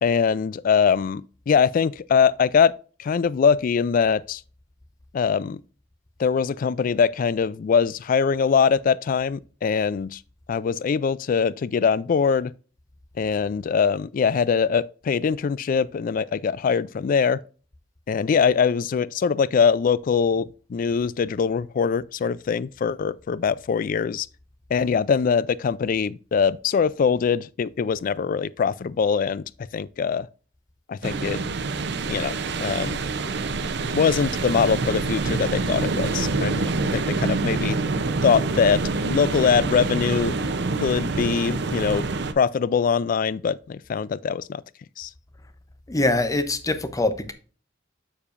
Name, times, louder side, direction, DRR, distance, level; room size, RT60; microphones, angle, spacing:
voice 1, 0.0-2.7 3.0-4.4 5.1-5.6 6.2-10.2 10.5-12.5 13.2-17.4 18.1-24.3 24.7-29.4 29.7-30.3 30.9-31.4 32.1-32.3 32.6-33.0 33.9-36.7 36.9-37.8 38.2-40.3 40.8-42.0 42.4-44.6 45.0-45.1, left 6 dB, 45° left, 0.3 m, -22 dB
sound 1, 31.0-42.3, right 3 dB, 65° right, 0.7 m, -26 dB
voice 2, 45.9-47.3, left 2 dB, 20° left, 0.7 m, -23 dB
7.2 x 6.8 x 2.5 m
head